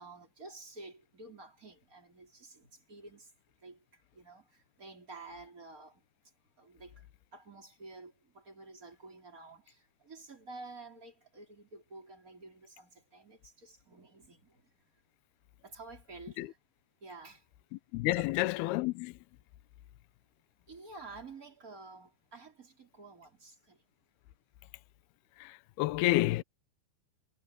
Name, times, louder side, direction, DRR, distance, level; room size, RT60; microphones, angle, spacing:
voice 1, 0.0-3.3 3.6-6.0 6.6-14.7 15.6-16.6 17.0-17.4 18.1-18.3 20.7-23.8, right 3 dB, 20° right, 4.3 m, -51 dB
voice 2, 17.9-19.1 25.4-26.4, left 18 dB, 75° left, 2.4 m, -29 dB
omnidirectional pair, 5.2 m